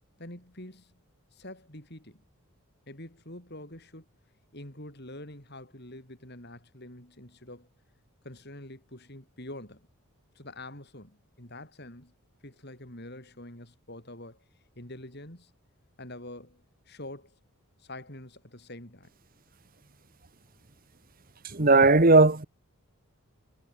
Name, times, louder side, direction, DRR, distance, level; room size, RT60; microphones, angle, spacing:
voice 1, 0.2-1.0 1.3-2.2 2.9-4.1 4.5-7.7 8.2-9.9 10.3-12.1 12.4-14.5 14.8-15.5 16.0-17.4 17.8-19.1, left 1 dB, 45° left, 6.1 m, -45 dB
voice 2, 21.5-22.4, right 3 dB, 40° right, 1.4 m, -18 dB
head